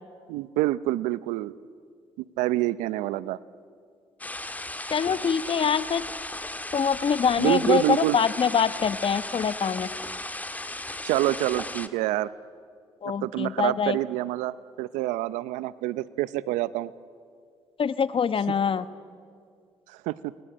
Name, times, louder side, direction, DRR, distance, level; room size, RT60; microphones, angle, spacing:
voice 1, 0.3-1.5 2.4-3.4 7.4-8.2 11.0-12.3 13.2-16.9 19.9-20.3, right 16 dB, 85° right, 17 dB, 0.7 m, -27 dB
sound 1, 4.2-11.9, left 2 dB, 15° left, 1.7 m, -36 dB
voice 2, 4.9-6.0 6.7-9.9 13.0-14.0 17.8-18.8, left 6 dB, 45° left, 14 dB, 1.1 m, -24 dB
28.5 x 19.5 x 8.7 m, 2.2 s
supercardioid pair, 65°, 12 cm